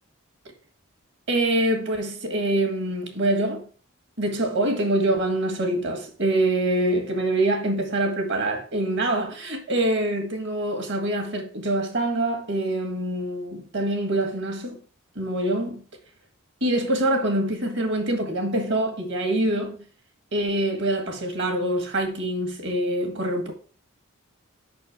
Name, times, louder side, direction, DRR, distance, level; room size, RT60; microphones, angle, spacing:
voice 1, 1.3-3.6 4.2-14.8 15.1-15.8 16.6-19.8 20.3-23.5, right 1 dB, 55° right, 1.6 m, -25 dB
5.7 x 4.4 x 5.9 m
head